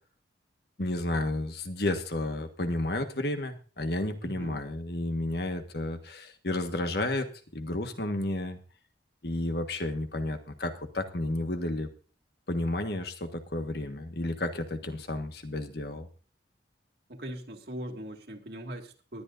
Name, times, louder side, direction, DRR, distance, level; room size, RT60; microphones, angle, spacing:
voice 1, 0.8-8.6 9.2-11.9 12.5-16.1, left 1 dB, 55° left, 6 dB, 1.5 m, -32 dB
voice 2, 4.2-4.6 17.1-19.2, equal, 55° right, 2 dB, 2.2 m, -40 dB
19.5 x 11.5 x 2.6 m, 0.38 s
head